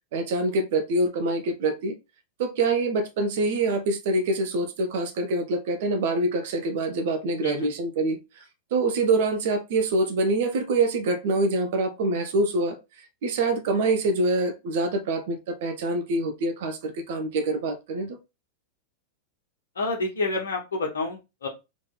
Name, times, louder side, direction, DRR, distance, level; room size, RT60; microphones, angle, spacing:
voice 1, 0.1-1.9 2.4-8.2 8.7-12.8 13.2-18.2, right 2 dB, 55° right, 1.0 m, -25 dB
voice 2, 19.8-21.5, left 3 dB, 70° left, 1.5 m, -28 dB
3.7 x 3.3 x 4.0 m
figure-of-eight pair, 90°, 0 cm